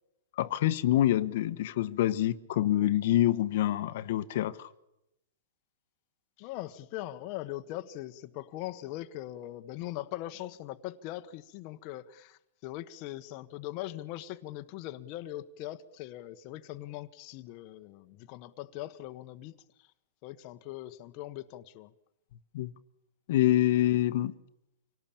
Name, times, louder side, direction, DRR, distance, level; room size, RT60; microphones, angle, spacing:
voice 1, 0.4-4.7 22.5-22.7 23.3-24.3, left 13 dB, 55° left, 1.2 m, -26 dB
voice 2, 6.4-19.9 20.2-21.9, left 15 dB, 35° left, 1.2 m, -41 dB
26.5 x 18.0 x 8.7 m
hypercardioid pair, 155°, 0 cm